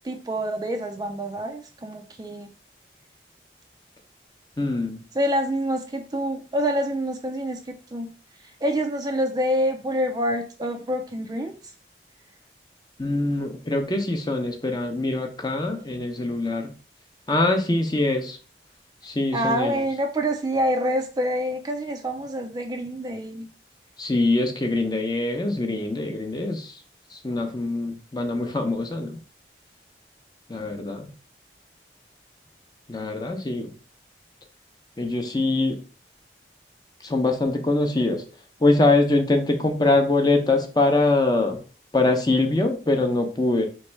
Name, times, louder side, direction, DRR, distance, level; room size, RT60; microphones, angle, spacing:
voice 1, 0.0-2.5 5.1-8.1 8.4-11.7 19.3-23.5, equal, 25° right, 4 dB, 0.4 m, -27 dB
voice 2, 4.6-5.0 13.0-16.7 17.3-18.4 19.0-19.8 24.0-26.8 27.1-29.2 30.5-31.1 32.9-33.7 35.0-35.8 37.0-38.2 38.6-41.6 41.9-43.7, left 2 dB, 25° left, 5 dB, 0.6 m, -23 dB
3.2 x 3.2 x 4.4 m, 0.37 s
head